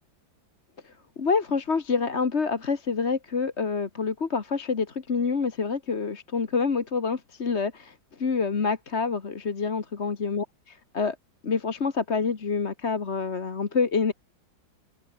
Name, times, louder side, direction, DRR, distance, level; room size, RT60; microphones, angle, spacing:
voice 1, 0.8-11.1 11.4-14.1, left 5 dB, 35° left, 1.7 m, -27 dB
open air
omnidirectional pair, 2.1 m